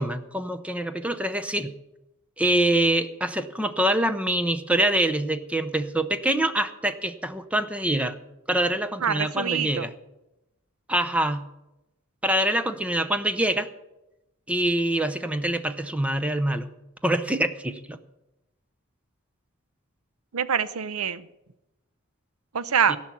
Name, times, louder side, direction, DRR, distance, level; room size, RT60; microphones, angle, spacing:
voice 1, 0.0-1.7 2.4-8.2 8.5-9.9 10.9-11.4 12.2-13.7 14.5-16.7 17.0-18.0 22.9-23.0, right 1 dB, 5° right, 10 dB, 0.6 m, -25 dB
voice 2, 9.0-9.9 20.3-21.3 22.5-23.0, right 7 dB, 85° right, 15 dB, 0.7 m, -25 dB
16.5 x 6.0 x 8.3 m, 0.94 s
head